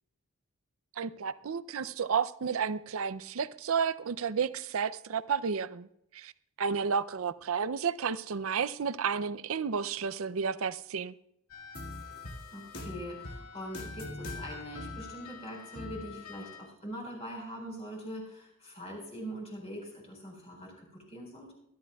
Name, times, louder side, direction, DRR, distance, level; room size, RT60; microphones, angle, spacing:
voice 1, 1.0-5.9 6.1-6.3 6.6-11.1, right 6 dB, 70° right, 0.5 m, -31 dB
sound 1, 11.5-16.6, left 2 dB, 80° left, 2.1 m, -43 dB
voice 2, 12.5-21.6, equal, 30° left, 4.7 m, -43 dB
23.0 x 12.5 x 2.3 m
head